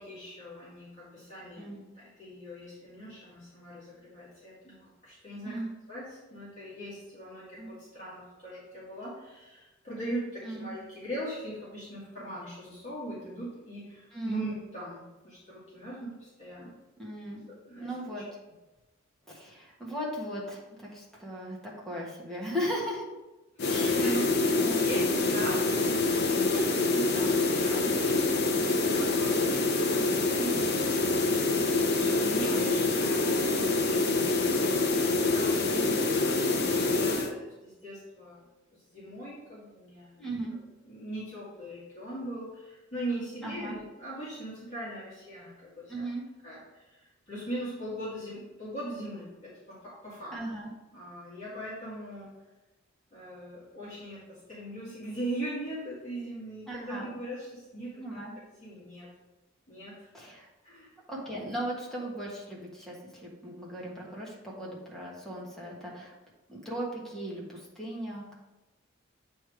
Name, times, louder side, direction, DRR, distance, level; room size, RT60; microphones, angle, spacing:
voice 1, 0.0-5.6 5.9-16.7 17.5-18.2 23.6-24.3 24.6-31.0 31.9-38.4 38.9-40.6 40.8-46.0 46.4-50.3 50.9-52.3 53.1-58.0 58.4-59.1 59.7-60.1 60.6-60.9, right 1 dB, 35° left, -9 dB, 2.2 m, -40 dB
voice 2, 14.1-14.4 17.0-17.4 17.8-18.2 19.3-23.1 23.6-24.2 24.5-24.8 29.8-30.1 35.7-36.0 40.2-40.6 43.4-43.7 45.9-46.2 50.3-50.7 56.7-57.1 58.0-58.3 60.1-60.5 61.1-66.1 66.5-68.3, equal, ahead, -5 dB, 1.5 m, -37 dB
sound 1, 23.6-37.3, left 3 dB, 55° left, 0.7 m, -26 dB
8.5 x 3.4 x 4.7 m, 1.1 s
head